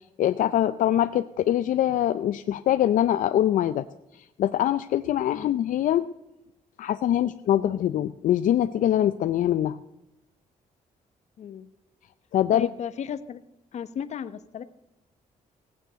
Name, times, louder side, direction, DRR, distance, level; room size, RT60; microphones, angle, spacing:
voice 1, 0.2-3.9 4.1-6.1 6.8-9.8 12.3-12.7, left 11 dB, 70° left, 11 dB, 0.5 m, -23 dB
voice 2, 11.4-11.7 12.5-13.4 13.7-14.6, left 8 dB, 55° left, 13 dB, 0.9 m, -35 dB
17.5 x 9.2 x 8.1 m, 0.90 s
cardioid pair, 150°, 14 cm